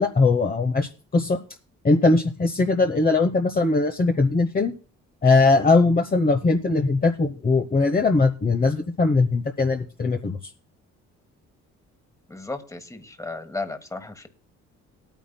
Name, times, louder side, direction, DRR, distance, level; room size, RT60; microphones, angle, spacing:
voice 1, 0.0-1.4 1.8-4.7 5.2-10.4, left 3 dB, 30° left, 3 dB, 1.0 m, -20 dB
voice 2, 12.3-14.3, left 3 dB, 10° left, 9 dB, 1.4 m, -34 dB
20.5 x 9.3 x 2.2 m, 0.36 s
cardioid pair, 90°, 30 cm